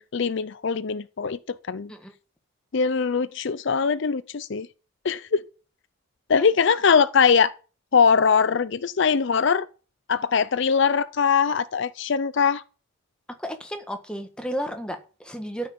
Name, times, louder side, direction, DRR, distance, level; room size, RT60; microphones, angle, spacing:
voice 1, 0.0-1.9 2.7-4.7 5.0-5.4 6.3-7.5 7.9-9.7 10.1-12.6, left 6 dB, 60° left, 0.5 m, -22 dB
voice 2, 13.4-15.7, equal, 5° left, 1.4 m, -33 dB
13.0 x 5.8 x 8.7 m
head